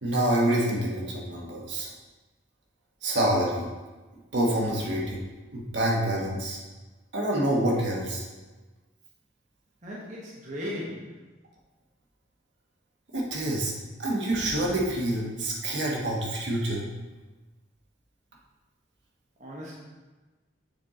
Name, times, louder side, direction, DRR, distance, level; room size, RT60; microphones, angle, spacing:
voice 1, 0.0-1.9 3.0-3.7 4.3-5.2 5.5-6.6 7.1-8.2 13.1-13.7 14.0-16.8, right 1 dB, 65° right, -4 dB, 1.3 m, -27 dB
voice 2, 9.8-11.3 19.4-19.7, left 1 dB, 40° right, -5 dB, 1.0 m, -37 dB
6.8 x 4.6 x 3.8 m, 1.2 s
head